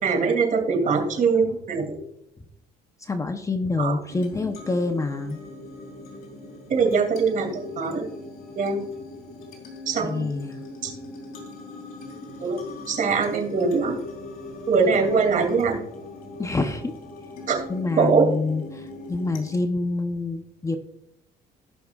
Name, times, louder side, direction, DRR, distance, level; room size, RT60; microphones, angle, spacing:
voice 1, 0.0-2.0 3.8-3.9 6.7-8.0 8.6-8.9 9.9-10.3 10.8-10.9 12.4-12.6 12.9-14.0 14.7-15.8 17.5-17.6 18.0-18.3, right 5 dB, 50° right, 3 dB, 2.7 m, -22 dB
voice 2, 3.0-5.4 10.0-10.6 16.4-16.9 17.7-20.8, left 3 dB, 20° left, 7 dB, 0.8 m, -27 dB
sound 1, 4.1-19.6, left 2 dB, 60° left, 3.3 m, -40 dB
16.5 x 5.8 x 2.4 m, 0.80 s
cardioid pair, 110°, 17 cm